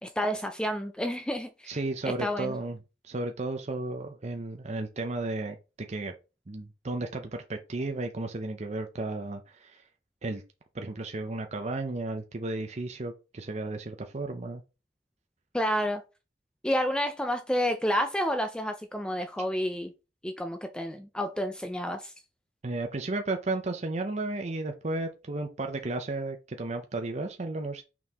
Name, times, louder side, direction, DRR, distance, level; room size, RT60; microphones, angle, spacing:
voice 1, 0.0-1.8 2.2-2.5 15.5-16.0 16.6-19.9 20.2-22.1, equal, 5° left, 0.5 m, -30 dB
voice 2, 1.7-2.8 3.0-6.1 6.5-9.8 10.2-10.4 10.7-14.6 22.6-27.8, right 2 dB, 40° right, 0.7 m, -33 dB
6.1 x 4.5 x 3.5 m
head